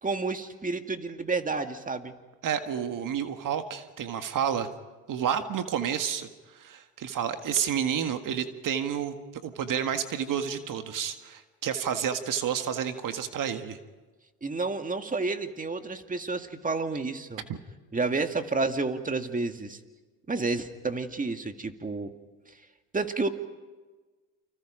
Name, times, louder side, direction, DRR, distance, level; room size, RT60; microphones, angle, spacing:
voice 1, 0.0-2.1 14.4-17.4 17.9-19.8 20.3-22.1 22.9-23.3, right 3 dB, 20° right, 7 dB, 2.1 m, -30 dB
voice 2, 2.4-4.7 5.1-6.3 6.5-9.2 9.4-13.8 17.5-17.6, right 8 dB, 50° right, 8 dB, 1.8 m, -30 dB
29.5 x 25.5 x 5.1 m, 1.3 s
hypercardioid pair, 70°, 40 cm